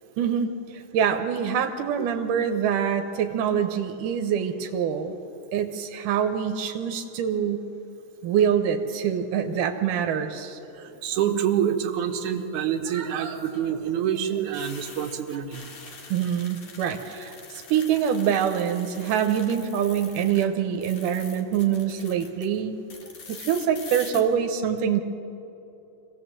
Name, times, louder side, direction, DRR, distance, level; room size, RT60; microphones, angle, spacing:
voice 1, 0.2-5.2 5.5-7.6 8.2-10.6 16.1-22.8 23.3-25.0, right 8 dB, 90° right, 5 dB, 2.6 m, -25 dB
voice 2, 10.7-15.9 17.7-17.8, right 9 dB, 70° right, 4 dB, 2.7 m, -27 dB
sound 1, 10.8-11.3 13.2-20.5 20.7-22.5 22.9-24.2, left 4 dB, 50° left, 2.7 m, -44 dB
25.5 x 17.5 x 7.7 m, 2.9 s
omnidirectional pair, 3.6 m